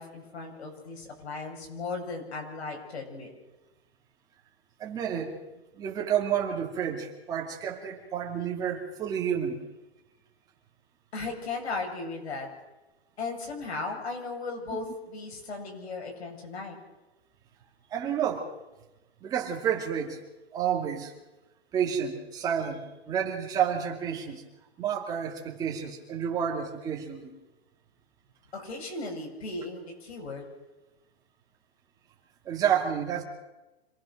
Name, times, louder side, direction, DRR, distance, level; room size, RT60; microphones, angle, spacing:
voice 1, 0.0-3.3 11.1-12.5 13.2-16.8 28.5-30.5, left 3 dB, 90° left, 2 dB, 7.9 m, -36 dB
voice 2, 4.8-5.4 5.7-9.6 17.9-18.5 19.2-20.2 20.5-21.1 21.7-24.4 24.8-27.3 32.4-33.2, right 8 dB, 10° right, -1 dB, 2.4 m, -30 dB
26.5 x 19.0 x 6.5 m, 1.1 s
hypercardioid pair, 175°, 32 cm